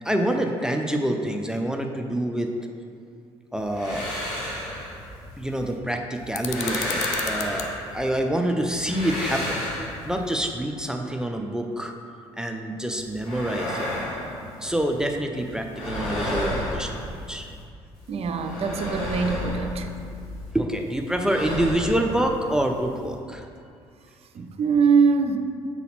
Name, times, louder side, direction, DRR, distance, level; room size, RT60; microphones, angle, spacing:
voice 1, 0.0-2.5 3.5-4.1 5.4-9.7 10.0-11.9 12.4-13.9 14.6-17.5 20.5-23.4, right 1 dB, 5° right, 3 dB, 0.6 m, -26 dB
sound 1, 3.6-5.7 6.2-8.2 8.6-10.5 12.9-15.1 15.4-17.6 17.9-20.5 20.8-23.1, left 1 dB, 80° left, 1.6 m, -32 dB
sound 2, 6.3-7.7, left 9 dB, 60° left, 0.5 m, -34 dB
voice 2, 18.1-19.9 24.3-25.4, right 5 dB, 50° right, 6 dB, 0.6 m, -22 dB
7.1 x 4.1 x 4.2 m, 2.3 s
hypercardioid pair, 55°, 13 cm